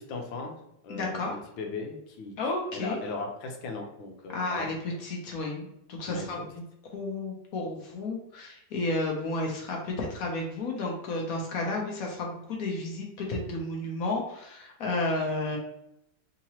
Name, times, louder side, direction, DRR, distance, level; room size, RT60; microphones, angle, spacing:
voice 1, 0.1-0.6 0.8-2.3 2.7-5.0 6.1-6.2, left 3 dB, 80° left, 2 dB, 1.4 m, -38 dB
voice 2, 0.9-1.3 2.4-3.0 4.3-6.6 6.9-15.6, left 2 dB, 60° left, 0 dB, 1.0 m, -32 dB
3.8 x 2.9 x 2.8 m, 0.79 s
omnidirectional pair, 2.1 m